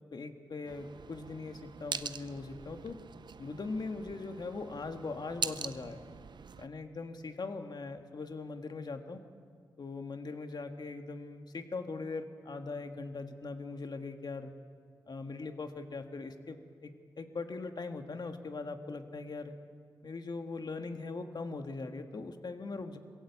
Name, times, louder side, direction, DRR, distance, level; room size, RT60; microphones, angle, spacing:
voice 1, 0.1-3.0 3.4-6.0 6.6-9.2 9.8-14.5 15.1-16.9 17.2-19.5 20.0-23.0, left 3 dB, 55° left, 6 dB, 1.7 m, -40 dB
sound 1, 0.7-6.7, right 6 dB, 65° right, 0.7 m, -43 dB
22.0 x 16.0 x 8.2 m, 2.1 s
cardioid pair, 45°, 8 cm